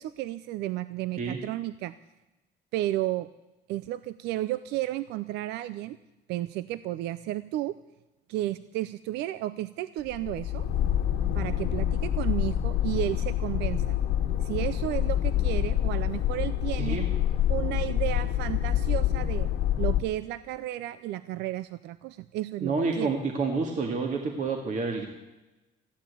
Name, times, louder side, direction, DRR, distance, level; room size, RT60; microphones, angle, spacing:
voice 1, 0.0-1.9 2.7-3.3 3.7-6.0 6.3-7.8 8.3-10.6 11.3-14.0 14.4-17.0 17.5-19.5 19.8-23.1, right 15 dB, 85° right, 15 dB, 0.5 m, -32 dB
sound 1, 10.0-20.0, left 11 dB, 85° left, 1.6 m, -27 dB
voice 2, 22.6-25.1, right 4 dB, 50° right, 3 dB, 2.0 m, -29 dB
15.0 x 11.5 x 8.3 m, 1.1 s
cardioid pair, 110°, 17 cm